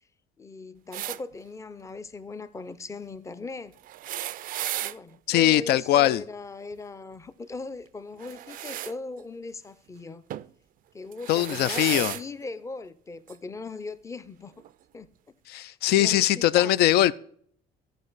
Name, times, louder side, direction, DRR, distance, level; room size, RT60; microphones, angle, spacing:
voice 1, 0.4-3.8 4.8-10.3 10.9-14.5 14.9-15.1 15.7-16.8, left 3 dB, 20° left, 0.5 m, -39 dB
sound 1, 0.9-1.2 3.8-5.0 8.2-8.9 10.3-10.5 11.1-12.2 13.3-13.4 14.6-14.7, right 13 dB, 55° right, 0.4 m, -34 dB
voice 2, 5.3-6.2 11.3-12.1 15.5-17.1, left 13 dB, 70° left, 0.4 m, -21 dB
14.0 x 5.1 x 4.0 m
cardioid pair, 110°, 17 cm